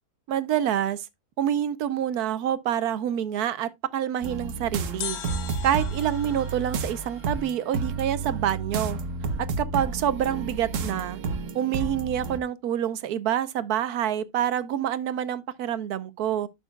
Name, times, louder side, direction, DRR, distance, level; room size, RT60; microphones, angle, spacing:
voice 1, 0.3-1.1 1.4-5.2 5.6-9.0 9.4-11.2 11.5-16.5, right 10 dB, 85° right, 1.3 m, -27 dB
sound 1, 4.2-12.4, right 4 dB, 60° right, 1.2 m, -31 dB
sound 2, 5.0-8.1 8.3-8.4, left 10 dB, 80° left, 1.3 m, -40 dB
11.0 x 6.7 x 2.3 m
omnidirectional pair, 1.6 m